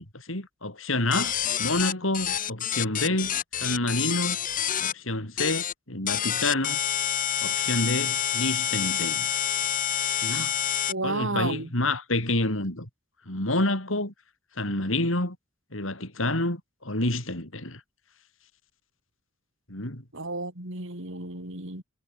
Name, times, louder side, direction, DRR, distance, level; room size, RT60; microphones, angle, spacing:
voice 1, 0.0-1.3 1.6-4.4 4.8-6.8 7.4-9.3 10.2-10.5 11.0-12.9 13.3-14.1 14.6-15.4 15.7-17.8 19.7-20.0, left 2 dB, 70° left, 6.7 m, -28 dB
sound 1, 1.1-4.9 5.4-5.7 6.1-10.9, left 9 dB, 45° left, 1.7 m, -28 dB
voice 2, 10.9-11.7 20.1-21.8, right 2 dB, 65° right, 5.9 m, -32 dB
head